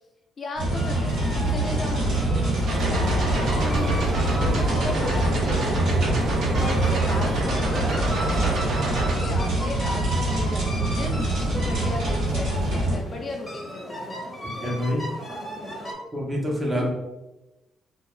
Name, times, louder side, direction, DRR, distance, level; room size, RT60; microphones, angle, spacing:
voice 1, 0.4-2.3 2.9-14.1 16.8-16.9, left 2 dB, 40° left, 1 dB, 0.3 m, -36 dB
sound 1, 0.5-13.0, right 2 dB, 80° right, 1.2 m, -24 dB
sound 2, 0.7-15.9, equal, 20° left, 0.7 m, -36 dB
sound 3, 2.7-9.1, right 1 dB, 60° right, 0.7 m, -28 dB
voice 2, 14.6-15.0 16.1-16.9, equal, 20° right, -2 dB, 0.7 m, -26 dB
2.3 x 2.2 x 2.9 m, 1.0 s
cardioid pair, 110°, 0 cm